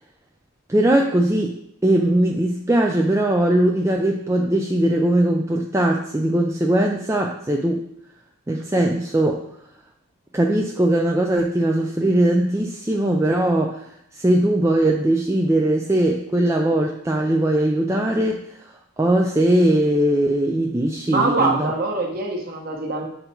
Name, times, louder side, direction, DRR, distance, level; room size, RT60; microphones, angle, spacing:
voice 1, 0.7-7.8 8.5-9.4 10.3-18.4 19.0-21.7, right 1 dB, 15° right, 0 dB, 0.4 m, -20 dB
voice 2, 21.1-23.1, right 3 dB, 45° right, 1 dB, 1.1 m, -23 dB
7.9 x 3.9 x 4.4 m, 0.73 s
head